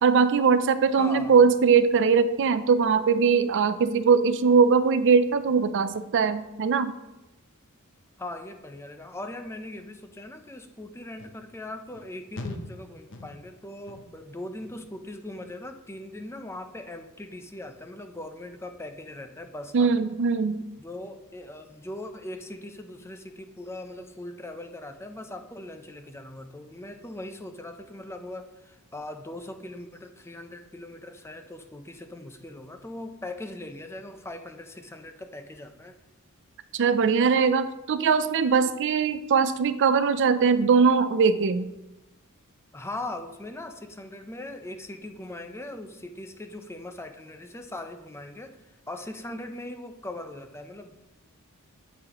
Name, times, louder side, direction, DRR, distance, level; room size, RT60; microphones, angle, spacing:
voice 1, 0.0-6.9 19.7-20.6 36.7-41.7, right 5 dB, 55° right, 12 dB, 0.4 m, -21 dB
voice 2, 1.0-1.4 8.2-19.9 20.8-35.9 42.7-51.0, left 1 dB, 10° left, 6 dB, 0.5 m, -40 dB
sound 1, 11.2-11.4 11.9-12.1 12.4-12.8 13.1-13.5 13.9-14.3 14.6-15.0 15.4-15.7 16.1-16.3, left 2 dB, 55° left, 0.8 m, -41 dB
8.5 x 8.3 x 3.0 m, 0.98 s
head